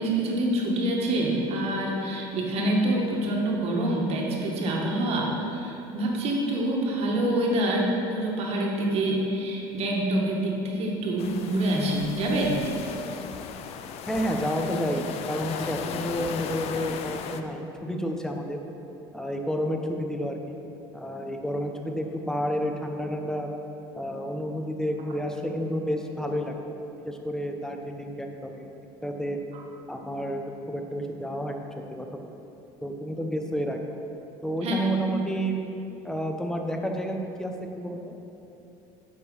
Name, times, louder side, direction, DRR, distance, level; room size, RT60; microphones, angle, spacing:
voice 1, 0.0-12.6 34.6-34.7, right 1 dB, 55° right, -1 dB, 1.8 m, -26 dB
sound 1, 11.2-17.4, left 7 dB, 55° left, 0.6 m, -36 dB
voice 2, 14.1-18.6 19.1-20.6 20.9-23.5 23.9-26.6 27.0-28.7 29.0-29.4 29.9-32.3 32.8-33.8 34.4-35.5 36.0-38.1, equal, 5° left, 3 dB, 0.9 m, -30 dB
9.3 x 5.5 x 5.5 m, 2.9 s
supercardioid pair, 100°, 12 cm